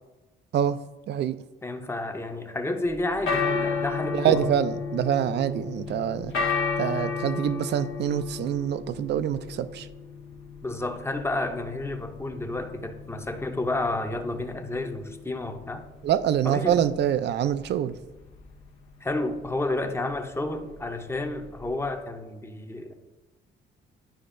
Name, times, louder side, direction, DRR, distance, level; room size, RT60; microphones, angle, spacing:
voice 1, 1.1-1.4 4.1-6.3 6.8-9.9 16.0-18.0, right 10 dB, 60° right, 14 dB, 0.4 m, -25 dB
voice 2, 1.6-4.5 10.6-15.9 16.4-16.8 19.0-22.9, left 2 dB, 15° left, 6 dB, 0.7 m, -31 dB
sound 1, 2.9-22.0, left 5 dB, 85° left, 0.9 m, -34 dB
10.0 x 4.7 x 2.6 m, 1.1 s
cardioid pair, 90°, 20 cm